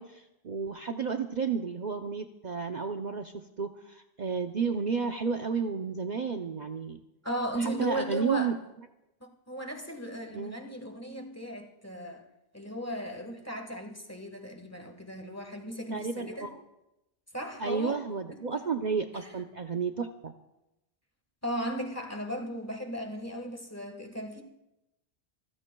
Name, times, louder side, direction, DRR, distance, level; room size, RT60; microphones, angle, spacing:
voice 1, 0.0-7.0 7.6-8.5 10.3-10.5 15.9-16.5 17.6-20.3, right 5 dB, 45° right, 0.7 m, -32 dB
voice 2, 7.2-8.5 9.2-12.2 12.5-16.5 17.3-18.0 18.3-18.7 19.1-19.3 21.4-24.4, equal, 15° left, 1.4 m, -36 dB
26.5 x 15.5 x 2.3 m
omnidirectional pair, 1.1 m